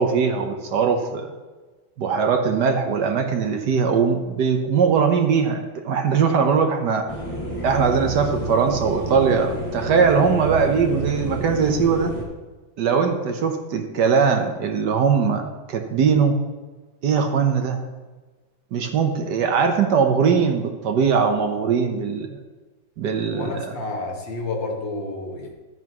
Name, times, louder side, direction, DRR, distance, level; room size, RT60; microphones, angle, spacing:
voice 1, 0.0-1.3 2.0-7.1 7.6-12.1 12.8-16.4 17.0-17.8 18.7-22.4 23.0-23.7, right 6 dB, 65° right, 5 dB, 1.4 m, -20 dB
sound 1, 7.1-12.2, right 1 dB, 15° left, 2.0 m, -29 dB
voice 2, 23.3-25.5, left 2 dB, 70° left, 0 dB, 2.3 m, -30 dB
13.0 x 8.4 x 3.0 m, 1.3 s
omnidirectional pair, 2.1 m